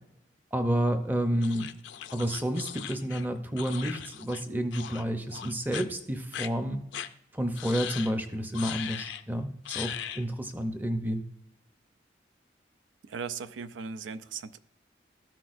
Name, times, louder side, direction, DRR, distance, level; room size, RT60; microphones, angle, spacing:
voice 1, 0.5-1.7 2.1-6.8 7.3-11.2, right 1 dB, 10° right, 0.6 m, -30 dB
sound 1, 1.4-4.4 4.7-5.0 5.3-5.9 6.3-6.5 6.9-7.1 7.6-8.1 8.5-9.2 9.7-10.2, left 10 dB, 75° left, 0.4 m, -39 dB
voice 2, 13.0-14.6, right 5 dB, 85° right, 0.4 m, -38 dB
13.0 x 5.9 x 2.5 m
head